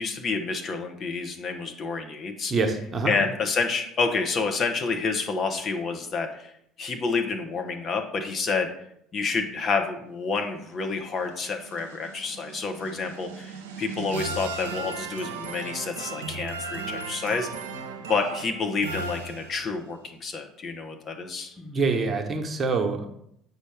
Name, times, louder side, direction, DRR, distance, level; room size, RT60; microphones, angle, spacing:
voice 1, 0.0-2.5 3.0-6.5 6.8-8.7 9.1-17.5 18.1-21.5, left 4 dB, 40° left, 4 dB, 1.0 m, -29 dB
voice 2, 2.5-3.1 21.6-23.1, right 4 dB, 30° right, 3 dB, 1.1 m, -25 dB
sound 1, 10.9-19.9, right 4 dB, 70° right, 0.8 m, -36 dB
7.8 x 5.4 x 3.4 m, 0.71 s
figure-of-eight pair, 60°, 0 cm